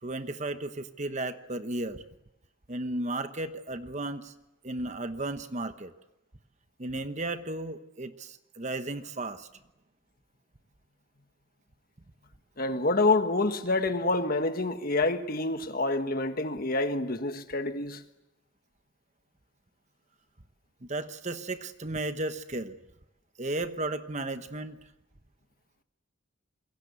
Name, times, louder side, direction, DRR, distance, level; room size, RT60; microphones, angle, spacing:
voice 1, 0.0-2.0 2.7-4.3 4.6-5.9 6.8-9.5 20.8-22.7 23.4-24.8, right 2 dB, 35° right, 1.1 m, -34 dB
voice 2, 12.6-18.0, left 2 dB, 45° left, 1.5 m, -27 dB
27.5 x 22.5 x 8.2 m
head